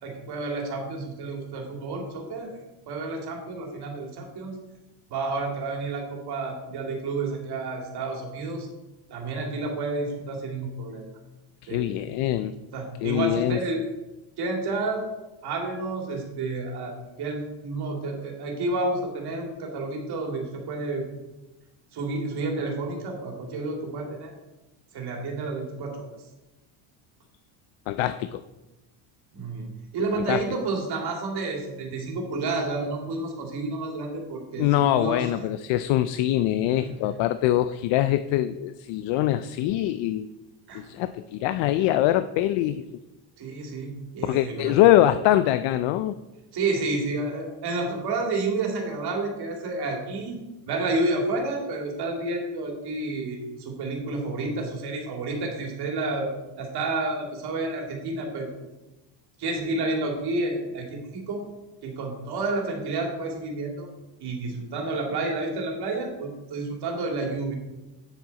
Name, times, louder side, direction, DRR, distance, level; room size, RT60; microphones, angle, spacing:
voice 1, 0.0-2.5 2.9-4.6 5.1-8.7 9.1-11.0 11.7-11.9 12.7-13.8 14.4-15.1 15.4-21.0 21.9-24.3 24.9-26.1 29.3-35.3 36.7-37.0 40.7-40.8 43.4-44.8 46.5-50.4 50.6-58.5 59.4-61.4 61.8-63.9 64.2-67.5, right 2 dB, 50° right, 1 dB, 2.5 m, -30 dB
voice 2, 11.6-12.5 13.0-13.6 27.9-28.4 30.1-30.4 34.6-40.3 40.7-42.8 44.2-46.2, left 13 dB, 65° left, 12 dB, 0.5 m, -23 dB
9.2 x 7.4 x 4.1 m, 1.0 s
cardioid pair, 140°, 49 cm